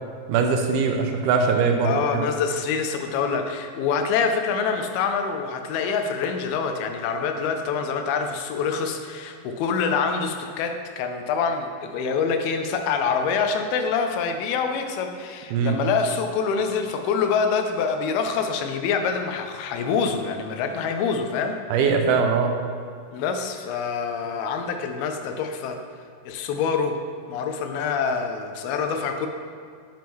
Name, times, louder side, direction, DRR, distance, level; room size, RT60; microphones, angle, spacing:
voice 1, 0.3-2.2 15.5-15.8 21.7-22.5, right 5 dB, 90° right, 4 dB, 2.6 m, -21 dB
voice 2, 1.8-21.6 23.1-25.8 26.2-27.0 27.3-29.3, left 5 dB, 80° left, 5 dB, 2.5 m, -26 dB
9.1 x 7.1 x 3.1 m, 2.2 s
omnidirectional pair, 4.5 m